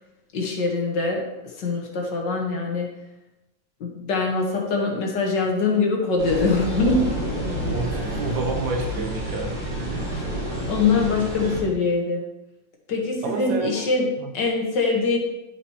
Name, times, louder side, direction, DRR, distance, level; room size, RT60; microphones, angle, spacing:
voice 1, 0.3-2.9 3.8-7.2 10.1-10.2 10.7-12.2 12.9-15.2, left 3 dB, 70° left, 0 dB, 2.0 m, -23 dB
sound 1, 6.2-11.6, equal, 30° right, 3.4 m, -29 dB
voice 2, 7.7-9.5 13.2-13.9 14.2-14.3, right 3 dB, 90° right, 2 dB, 1.8 m, -28 dB
13.0 x 5.2 x 2.9 m, 0.96 s
omnidirectional pair, 2.0 m